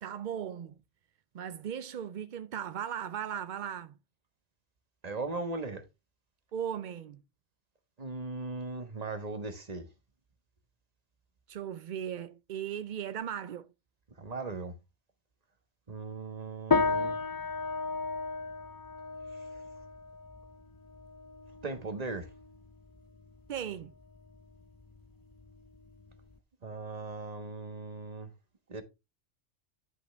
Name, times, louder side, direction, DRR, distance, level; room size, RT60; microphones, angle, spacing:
voice 1, 0.0-0.7 1.3-3.9 6.5-7.2 11.5-13.7 23.5-23.9, right 9 dB, 60° right, 0.5 m, -37 dB
voice 2, 5.0-5.8 8.0-9.9 14.2-14.8 15.9-17.2 19.3-19.4 21.6-22.3 26.6-28.3 28.7-28.8, right 3 dB, 35° right, 1.3 m, -38 dB
sound 1, 16.7-26.4, left 4 dB, 35° left, 0.3 m, -35 dB
10.5 x 5.5 x 3.3 m
omnidirectional pair, 1.3 m